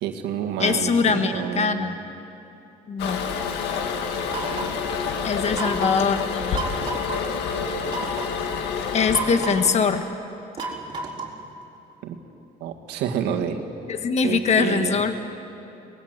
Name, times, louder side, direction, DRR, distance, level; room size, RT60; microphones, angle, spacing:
voice 1, 0.0-1.9 12.0-12.2 12.6-13.6 14.2-15.0, right 8 dB, 85° right, 3 dB, 2.1 m, -28 dB
voice 2, 0.6-2.0 2.9-3.2 5.2-6.6 8.9-10.0 13.9-15.2, left 5 dB, 40° left, 8 dB, 1.4 m, -22 dB
Toilet flush, 3.0-10.1, left 6 dB, 90° left, 2.0 m, -28 dB
sound 1, 4.3-4.8 5.5-6.1 6.5-7.2 7.9-8.4 9.1-9.8 10.6-11.4, right 3 dB, 30° right, 4.1 m, -31 dB
23.0 x 19.5 x 8.1 m, 2.9 s
cardioid pair, 110°, 17 cm